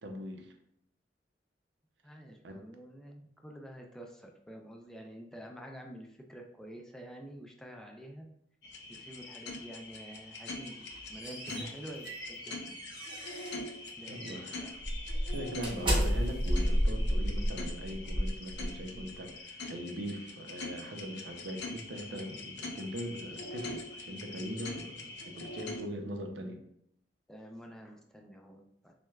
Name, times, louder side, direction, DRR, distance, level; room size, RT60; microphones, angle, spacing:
voice 1, 0.0-0.5 2.4-2.6 11.5-11.7 14.1-14.8 15.3-26.6, equal, 85° right, 4 dB, 0.6 m, -41 dB
voice 2, 2.0-8.3 8.9-12.7 14.0-14.7 27.3-28.9, equal, 5° left, 2 dB, 0.3 m, -48 dB
sound 1, 8.6-25.8, left 2 dB, 70° left, 0.5 m, -44 dB
sound 2, 10.7-13.7 14.1-14.4 14.8-19.0, equal, 30° right, 0.9 m, -32 dB
6.0 x 2.2 x 2.3 m, 0.74 s
head